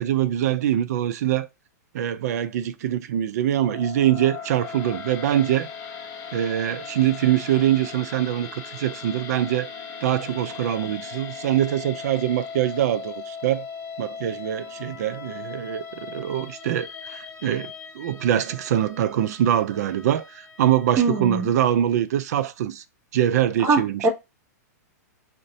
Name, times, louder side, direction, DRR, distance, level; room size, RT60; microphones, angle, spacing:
voice 1, 0.0-1.5 1.9-5.7 6.3-9.7 10.0-13.6 14.0-22.8 23.1-24.1, right 11 dB, 65° right, 0.4 m, -24 dB
sound 1, 3.5-21.8, left 6 dB, 30° left, 0.7 m, -39 dB
voice 2, 21.0-21.5 23.6-24.1, right 3 dB, 30° right, 1.0 m, -22 dB
2.5 x 2.1 x 3.9 m
hypercardioid pair, 130°, 9 cm